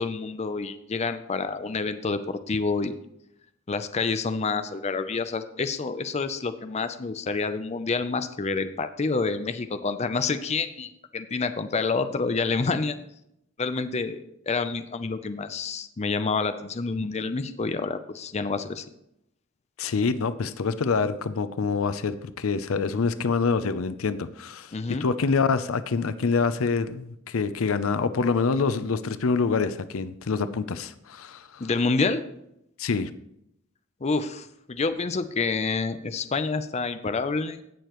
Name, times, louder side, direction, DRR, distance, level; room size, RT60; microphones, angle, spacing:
voice 1, 0.0-3.0 3.7-13.0 13.6-14.2 14.5-18.8 24.7-25.1 31.6-32.2 34.0-37.6, left 4 dB, 30° left, 10 dB, 0.5 m, -28 dB
voice 2, 19.8-31.6 32.8-33.1, left 4 dB, 85° left, 13 dB, 0.6 m, -26 dB
17.0 x 6.7 x 3.0 m, 0.78 s
head